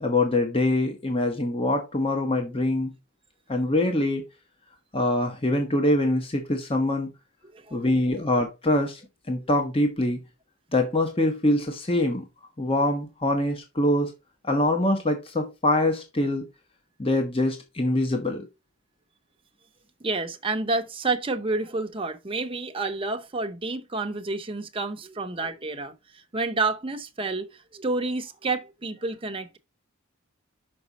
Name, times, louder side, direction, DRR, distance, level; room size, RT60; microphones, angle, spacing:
voice 1, 0.0-2.9 3.5-4.2 4.9-7.1 7.7-9.0 9.3-10.2 10.7-12.2 12.6-14.1 14.4-16.4 17.0-18.4, left 1 dB, 25° left, 1.0 m, -24 dB
voice 2, 7.5-7.9 20.0-29.6, right 3 dB, 25° right, 0.8 m, -29 dB
6.0 x 5.2 x 4.0 m
head